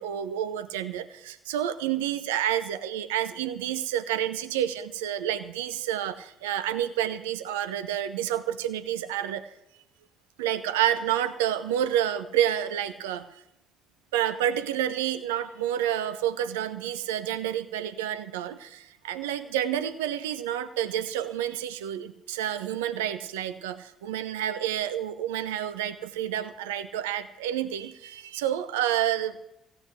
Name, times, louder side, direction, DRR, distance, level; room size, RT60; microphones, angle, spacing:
voice 1, 0.0-9.4 10.4-13.4 14.1-29.4, right 11 dB, 80° right, 13 dB, 0.8 m, -29 dB
16.0 x 8.0 x 8.0 m, 0.82 s
hypercardioid pair, 55°, 0 cm